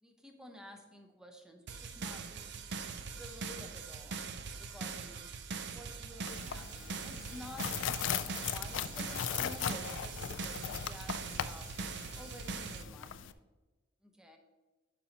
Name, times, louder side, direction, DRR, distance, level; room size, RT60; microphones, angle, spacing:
voice 1, 0.0-2.7 3.1-4.2 4.6-5.3 5.7-11.8 12.1-13.3 14.0-14.4, left 1 dB, 5° right, 3 dB, 0.7 m, -51 dB
sound 1, 1.7-12.8, right 4 dB, 55° right, 0.5 m, -42 dB
sound 2, 2.3-11.2, right 2 dB, 75° right, 2.1 m, -64 dB
sound 3, 6.3-13.3, left 9 dB, 65° left, 0.3 m, -39 dB
11.5 x 5.2 x 2.9 m, 1.2 s
head